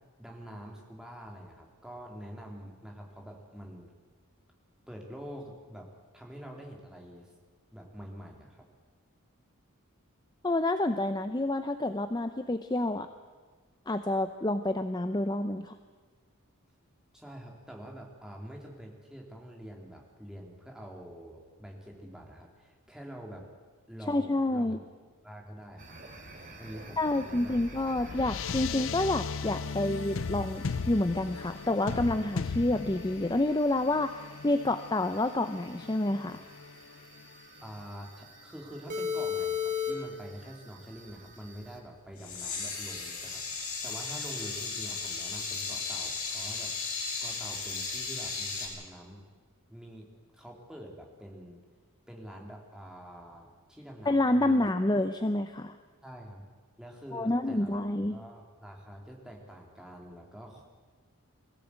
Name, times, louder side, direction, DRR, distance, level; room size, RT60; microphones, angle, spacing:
voice 1, 0.2-3.9 4.9-7.3 7.7-8.7 17.1-23.5 23.9-24.8 25.2-26.1 26.5-27.6 37.6-46.7 47.2-49.2 49.7-50.1 50.3-51.6 52.1-54.6 56.0-56.5 56.8-60.6, equal, 5° right, 0 dB, 2.8 m, -46 dB
voice 2, 10.4-13.1 13.9-15.7 24.1-24.8 27.0-36.4 54.1-55.7 57.1-58.2, left 1 dB, 20° left, 9 dB, 0.6 m, -28 dB
sound 1, 25.8-41.8, left 6 dB, 40° right, 2.7 m, -41 dB
sound 2, 27.4-37.8, left 5 dB, 60° left, 0.5 m, -38 dB
sound 3, 42.2-48.7, left 4 dB, 90° left, 5.9 m, -35 dB
21.0 x 15.5 x 8.2 m, 1.5 s
head